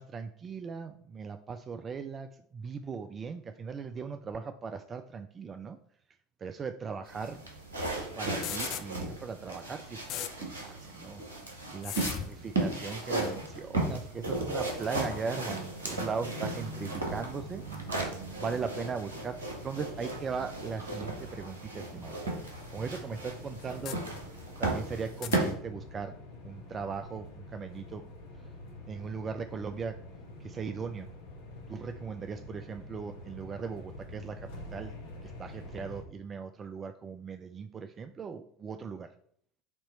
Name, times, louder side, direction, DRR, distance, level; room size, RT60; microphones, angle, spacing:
voice 1, 0.0-5.8 6.4-7.4 8.2-11.2 11.7-17.6 18.4-22.2 22.5-24.0 24.6-26.1 26.4-28.0 28.9-30.0 30.4-31.1 31.7-34.9 35.2-39.1, right 5 dB, 30° right, 9 dB, 0.4 m, -38 dB
sound 1, 7.1-25.5, right 2 dB, 80° right, 1.5 m, -36 dB
sound 2, 8.4-8.8 9.6-9.7 9.9-10.3 11.8-12.4 13.2-13.4 14.8-15.0 16.3-16.5 17.7-17.8 19.2-19.3 20.7-20.8 22.1-22.2 22.6-22.7 23.6-24.0 25.0-25.4, left 10 dB, 50° left, 0.5 m, -38 dB
sound 3, 16.6-36.0, left 2 dB, 70° left, 1.7 m, -48 dB
7.5 x 3.0 x 4.3 m, 0.63 s
figure-of-eight pair, 75°, 0 cm